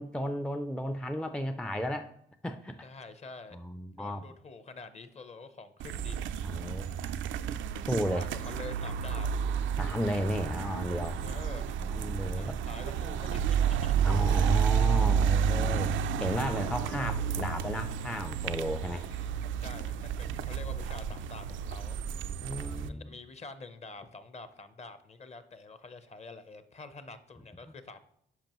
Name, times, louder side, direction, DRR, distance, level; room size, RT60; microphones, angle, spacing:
voice 1, 0.0-2.1 2.4-2.8 3.5-4.2 6.4-6.8 7.8-8.3 9.8-11.4 11.8-12.6 14.0-19.1 20.3-20.5 22.4-23.1, equal, 5° left, 0.4 m, -33 dB
voice 2, 2.8-3.6 3.9-6.2 8.1-9.3 11.2-11.7 12.4-14.1 18.9-19.3 19.6-22.0 22.9-28.0, left 3 dB, 35° left, 0.7 m, -47 dB
sound 1, 5.8-22.9, right 7 dB, 75° right, 0.4 m, -31 dB
10.5 x 5.2 x 3.0 m
cardioid pair, 90°, 20 cm